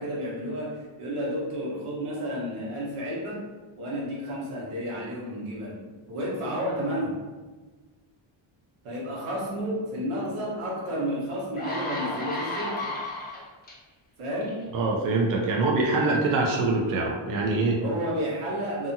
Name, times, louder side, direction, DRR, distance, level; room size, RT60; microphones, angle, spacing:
voice 1, 0.0-3.4 3.8-5.8 6.1-7.1 8.8-12.9 14.2-14.6 17.8-18.9, equal, 80° right, -5 dB, 1.1 m, -31 dB
sound 1, 10.8-10.9 11.4-13.7 14.4-14.6, left 1 dB, 20° left, 0.6 m, -33 dB
voice 2, 14.7-17.8, right 3 dB, 45° right, -2 dB, 0.4 m, -24 dB
2.7 x 2.4 x 2.6 m, 1.3 s
cardioid pair, 145°, 49 cm